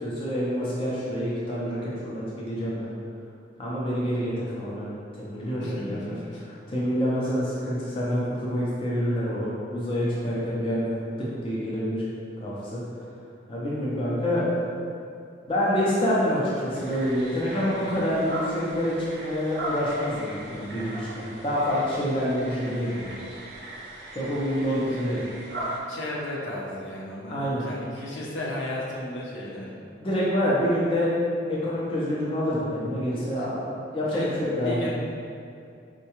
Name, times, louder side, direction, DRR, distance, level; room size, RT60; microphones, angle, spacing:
voice 1, 0.0-2.9 3.6-6.1 6.4-12.0 12.4-12.8 13.5-14.5 15.5-23.2 24.1-25.2 27.3-27.7 29.9-31.1 31.5-34.9, equal, 30° left, -8 dB, 0.5 m, -27 dB
voice 2, 5.6-6.4 24.7-25.2 25.9-29.7 34.1-34.9, left 1 dB, 75° left, -5 dB, 0.7 m, -35 dB
sound 1, 16.7-25.8, right 1 dB, 60° right, 0.5 m, -38 dB
4.5 x 2.2 x 2.9 m, 2.4 s
head